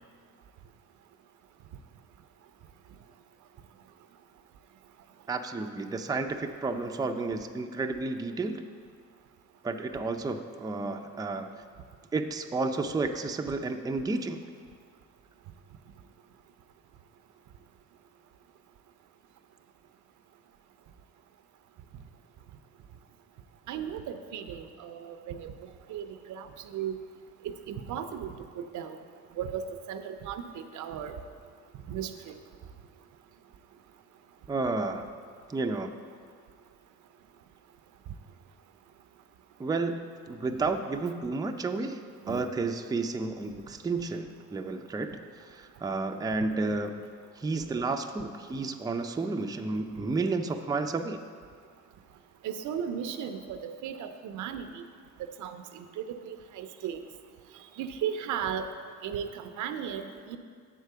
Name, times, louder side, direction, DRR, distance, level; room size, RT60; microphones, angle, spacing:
voice 1, 5.3-8.6 9.6-11.5 12.1-14.4 34.5-35.1 35.5-36.0 39.6-40.0 40.3-42.0 42.3-47.1 47.4-51.2, right 3 dB, 15° right, 5 dB, 0.4 m, -31 dB
voice 2, 23.7-25.5 25.9-26.9 27.4-29.0 29.4-31.1 31.9-32.3 42.3-42.4 52.4-54.8 55.2-57.0 57.8-58.7 59.0-60.4, right 8 dB, 75° right, 8 dB, 0.6 m, -36 dB
7.4 x 4.7 x 6.7 m, 2.1 s
cardioid pair, 90°, 30 cm